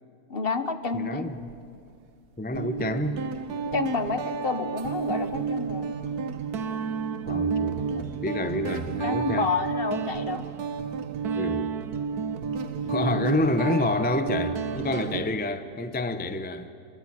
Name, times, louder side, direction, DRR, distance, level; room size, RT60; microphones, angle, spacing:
voice 1, 0.3-1.3 3.7-5.9 9.0-10.5, left 4 dB, 40° left, 10 dB, 1.2 m, -29 dB
voice 2, 0.9-1.4 2.4-3.2 7.3-9.5 11.4-11.7 12.8-16.7, left 1 dB, 10° left, 10 dB, 0.6 m, -28 dB
Guitar, 1.3-1.5 2.5-15.2, right 5 dB, 80° right, 1.5 m, -31 dB
27.0 x 21.0 x 9.4 m, 2.5 s
omnidirectional pair, 1.7 m